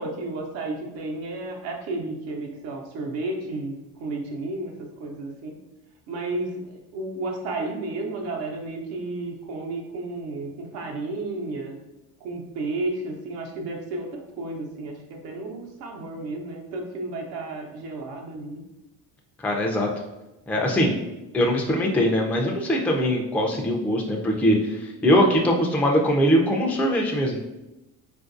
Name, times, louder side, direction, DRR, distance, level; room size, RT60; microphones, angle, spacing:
voice 1, 0.0-5.6 6.1-11.7 12.2-18.6, right 2 dB, 80° right, 1 dB, 0.8 m, -32 dB
voice 2, 19.4-19.9 20.5-20.9 21.3-27.4, equal, 5° left, 0 dB, 0.4 m, -22 dB
3.9 x 2.5 x 2.5 m, 0.98 s
supercardioid pair, 75°, 44 cm